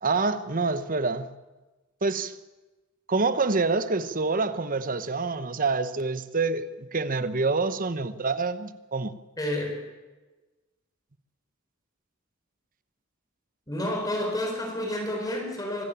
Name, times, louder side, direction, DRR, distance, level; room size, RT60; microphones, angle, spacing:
voice 1, 0.0-1.3 2.0-2.4 3.1-9.1, right 3 dB, 40° right, 1.0 m, -27 dB
voice 2, 9.4-9.8 13.7-15.8, left 1 dB, 20° left, 4.0 m, -30 dB
24.5 x 14.0 x 8.7 m
head